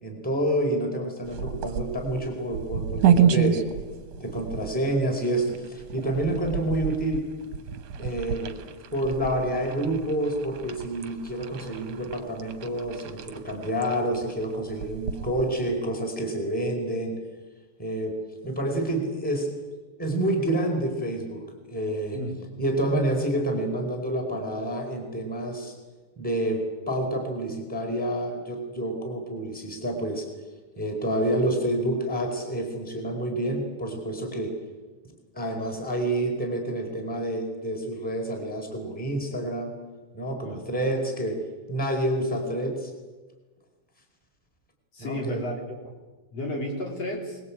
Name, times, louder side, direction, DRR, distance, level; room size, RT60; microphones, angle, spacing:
voice 1, 0.0-3.6 4.2-7.2 8.0-8.5 8.9-17.1 17.8-19.5 20.0-21.4 21.7-22.2 22.6-25.7 26.2-30.3 30.8-34.6 35.3-39.7 40.1-41.4 41.7-42.9 45.0-45.5, right 1 dB, 5° left, 2 dB, 4.2 m, -28 dB
sound 1, 1.2-15.8, right 8 dB, 60° right, 2.2 m, -30 dB
voice 2, 44.9-45.5 45.8-45.9 46.3-47.4, left 1 dB, 50° left, 0 dB, 5.0 m, -32 dB
24.5 x 20.5 x 8.6 m, 1.2 s
omnidirectional pair, 3.7 m